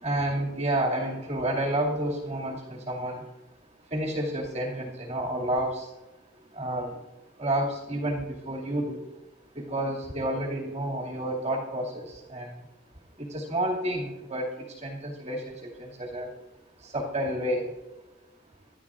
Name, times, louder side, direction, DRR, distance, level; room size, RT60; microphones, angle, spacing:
voice 1, 0.0-3.2 3.9-5.9 6.6-7.0 7.4-9.0 9.6-12.5 13.2-14.5 14.8-15.4 15.8-16.3 16.9-17.7, right 1 dB, 35° right, -2 dB, 2.3 m, -30 dB
25.0 x 12.0 x 2.5 m, 1.1 s
head